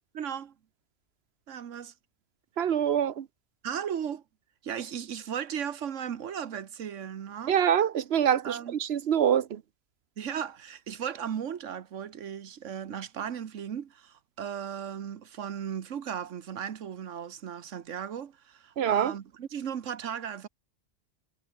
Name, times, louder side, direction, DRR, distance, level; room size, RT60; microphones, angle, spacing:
voice 1, 0.1-0.5 1.5-1.9 3.6-4.2 4.6-7.6 8.4-8.8 10.2-20.5, right 8 dB, 85° right, 1.4 m, -36 dB
voice 2, 2.6-3.2 7.5-9.6 18.8-19.1, right 9 dB, 60° right, 1.1 m, -25 dB
omnidirectional pair, 1.2 m